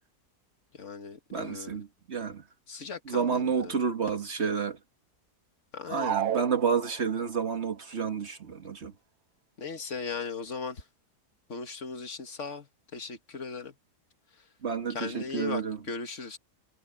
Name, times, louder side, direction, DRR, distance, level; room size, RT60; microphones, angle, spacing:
voice 1, 0.7-1.8 2.7-3.7 5.7-6.2 9.6-10.9 11.5-13.8 14.4-14.5 14.9-16.4, left 5 dB, 50° left, 2.0 m, -38 dB
voice 2, 1.3-2.4 3.1-4.8 5.9-8.9 14.6-15.8, right 6 dB, 45° right, 1.7 m, -30 dB
sound 1, 5.9-7.4, right 10 dB, 75° right, 1.3 m, -32 dB
omnidirectional pair, 1.7 m